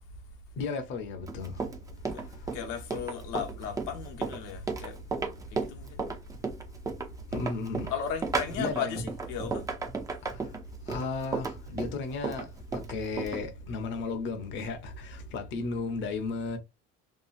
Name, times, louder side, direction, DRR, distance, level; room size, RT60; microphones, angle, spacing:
voice 1, 0.6-1.5 7.3-7.9 8.6-9.0 10.9-12.4 12.9-15.1 15.3-16.6, left 4 dB, 40° left, 0.6 m, -34 dB
Run, 1.3-13.4, right 4 dB, 10° right, 0.4 m, -34 dB
voice 2, 2.5-5.0 5.5-6.0 7.9-9.7, left 8 dB, 80° left, 0.9 m, -36 dB
2.8 x 2.3 x 2.5 m
cardioid pair, 155°, 30 cm